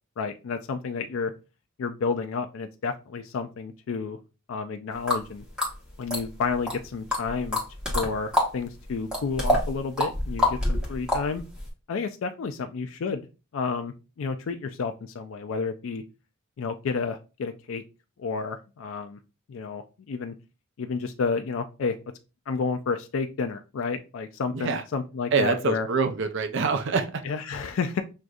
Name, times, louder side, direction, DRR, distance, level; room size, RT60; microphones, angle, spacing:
voice 1, 0.2-1.3 1.8-4.2 4.5-5.4 6.0-7.6 7.9-11.4 11.9-13.2 13.5-16.0 16.6-17.8 18.2-19.2 19.5-20.3 20.8-22.0 22.5-25.9 27.2-28.0, left 5 dB, 65° left, 7 dB, 0.4 m, -30 dB
sound 1, 5.1-5.2 5.6-6.8 7.1-8.5 8.8-11.7, left 1 dB, 5° right, 1.1 m, -26 dB
voice 2, 25.3-27.2, right 4 dB, 55° right, 8 dB, 0.5 m, -25 dB
6.2 x 2.6 x 2.4 m, 0.30 s
head